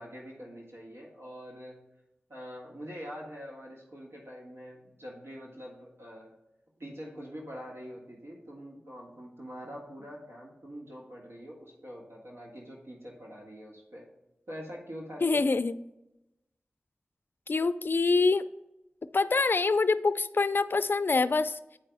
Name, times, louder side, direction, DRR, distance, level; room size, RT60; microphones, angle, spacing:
voice 1, 0.0-1.8 2.3-6.3 6.8-14.1 14.5-15.5, equal, 80° right, -3 dB, 1.6 m, -44 dB
voice 2, 15.2-15.7 17.5-18.4 19.1-21.6, left 3 dB, 55° left, 13 dB, 0.4 m, -25 dB
8.6 x 5.0 x 3.4 m, 0.91 s
wide cardioid pair, 70°, 4 cm